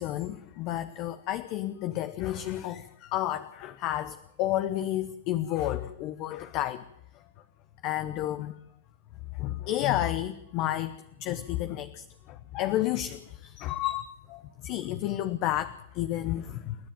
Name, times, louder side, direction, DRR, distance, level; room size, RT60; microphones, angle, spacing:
voice 1, 0.0-6.8 7.8-8.6 9.4-16.8, left 13 dB, 45° left, 11 dB, 1.0 m, -31 dB
29.0 x 10.5 x 9.0 m, 0.83 s
hypercardioid pair, 125°, 0 cm